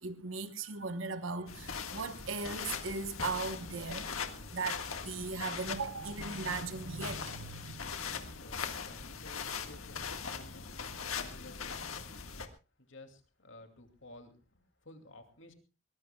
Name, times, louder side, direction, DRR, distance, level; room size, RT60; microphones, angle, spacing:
voice 1, 0.0-4.1 4.5-7.8 8.2-8.4, right 4 dB, 70° right, 1.1 m, -38 dB
sound 1, 1.5-12.5, left 6 dB, 90° left, 1.8 m, -41 dB
voice 2, 8.4-11.9 12.8-15.5, left 2 dB, 65° left, 2.6 m, -55 dB
22.5 x 20.0 x 2.3 m
head